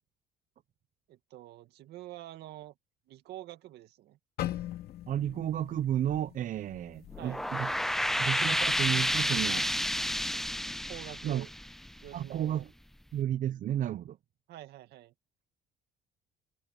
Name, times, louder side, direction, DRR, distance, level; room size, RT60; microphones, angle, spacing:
voice 1, 1.1-2.7 3.1-4.2 7.2-7.5 10.8-11.5 12.0-12.7 14.5-15.1, right 14 dB, 75° right, 2.0 m, -47 dB
sound 1, 4.4-8.4 8.8-9.0 9.7-10.0, left 13 dB, 65° left, 2.5 m, -41 dB
voice 2, 5.1-7.7 8.2-9.7 11.2-11.5 12.1-12.7 13.1-14.2, right 11 dB, 50° right, 0.5 m, -32 dB
sound 2, 7.1-12.4, equal, ahead, 0.7 m, -30 dB
cardioid pair, 110°, 17 cm